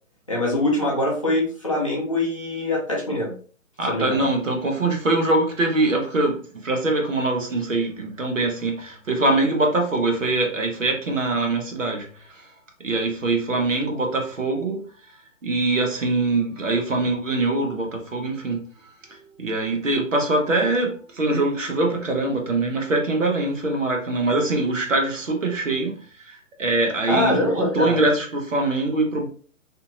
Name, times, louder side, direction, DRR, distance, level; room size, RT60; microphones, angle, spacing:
voice 1, 0.3-3.3 3.9-4.2 27.1-28.0, left 1 dB, 25° left, 0.5 m, -23 dB
voice 2, 3.8-12.5 12.8-14.8 15.4-29.3, right 2 dB, 70° right, 1.0 m, -23 dB
2.8 x 2.7 x 2.5 m
figure-of-eight pair, 135°, 40 cm